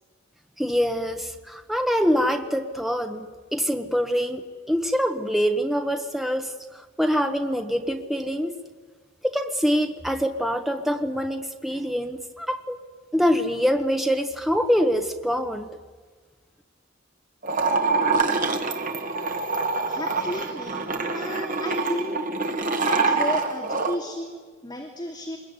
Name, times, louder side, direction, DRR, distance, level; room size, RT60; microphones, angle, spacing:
voice 1, 0.6-8.6 9.2-12.8 13.1-15.7, equal, ahead, 5 dB, 1.3 m, -25 dB
sound 1, 17.4-24.0, right 3 dB, 45° right, 2.2 m, -25 dB
voice 2, 19.9-20.9 21.1-22.2 22.8-25.4, left 1 dB, 20° left, 0 dB, 2.9 m, -33 dB
26.5 x 21.5 x 9.9 m, 1.5 s
head